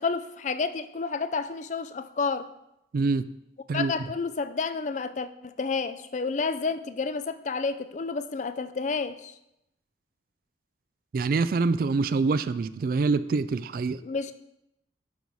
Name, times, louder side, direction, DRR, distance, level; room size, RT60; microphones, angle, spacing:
voice 1, 0.0-2.5 3.7-9.3 14.0-14.3, left 4 dB, 40° left, 0.4 m, -30 dB
voice 2, 2.9-3.3 3.7-3.9 11.1-14.0, right 4 dB, 50° right, 0.3 m, -25 dB
11.5 x 4.2 x 4.6 m
head